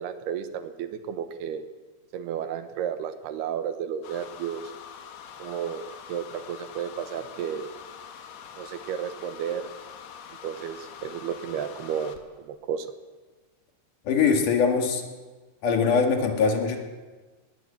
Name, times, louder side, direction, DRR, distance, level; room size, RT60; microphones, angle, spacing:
voice 1, 0.0-1.6 2.1-4.7 5.4-7.7 8.6-9.7 10.4-12.9, right 8 dB, 80° right, 9 dB, 3.2 m, -33 dB
sound 1, 4.0-12.3, left 7 dB, 75° left, 3.4 m, -44 dB
voice 2, 14.0-15.1 15.6-16.8, left 5 dB, 55° left, 3 dB, 3.4 m, -22 dB
21.0 x 14.0 x 8.7 m, 1.3 s
omnidirectional pair, 4.6 m